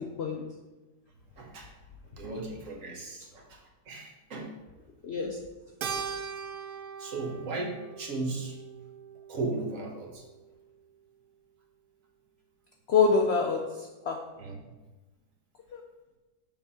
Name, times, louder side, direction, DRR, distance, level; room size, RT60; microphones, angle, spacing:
voice 1, 0.2-0.5 5.0-5.4 12.9-14.3 15.7-15.8, left 5 dB, 75° left, 2 dB, 0.6 m, -26 dB
voice 2, 1.4-1.7 2.2-4.5 7.0-8.5 9.3-10.2 14.4-14.6, right 3 dB, 55° right, 0 dB, 1.4 m, -36 dB
Keyboard (musical), 5.8-10.4, right 6 dB, 80° right, 1.2 m, -40 dB
6.9 x 3.5 x 5.5 m, 1.2 s
omnidirectional pair, 1.8 m